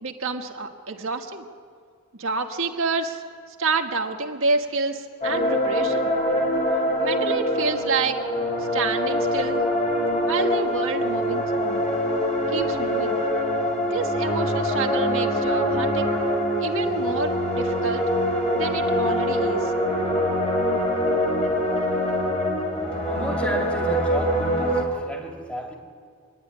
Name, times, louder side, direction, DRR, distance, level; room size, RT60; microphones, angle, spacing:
voice 1, 0.0-1.4 2.1-3.2 3.6-6.1 7.0-8.2 8.6-9.6 10.3-11.8 12.5-13.1 13.9-16.1 16.6-18.0 18.5-19.7, right 4 dB, 75° right, 3 dB, 1.6 m, -28 dB
sound 1, 5.2-24.8, equal, 35° left, 3.5 m, -24 dB
voice 2, 23.1-24.7 25.0-25.7, equal, 5° left, 0 dB, 2.4 m, -31 dB
25.5 x 10.5 x 9.9 m, 2.1 s
head